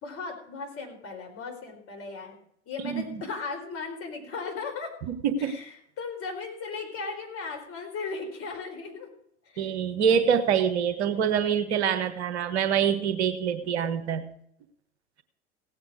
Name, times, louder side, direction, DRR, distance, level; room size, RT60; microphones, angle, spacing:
voice 1, 0.0-4.9 5.4-9.1 9.4-9.7, left 4 dB, 40° left, 2 dB, 4.6 m, -37 dB
voice 2, 2.8-3.2 5.1-5.6 9.6-14.3, right 7 dB, 65° right, 10 dB, 1.4 m, -25 dB
17.0 x 8.7 x 4.9 m, 0.69 s
figure-of-eight pair, 80°, 36 cm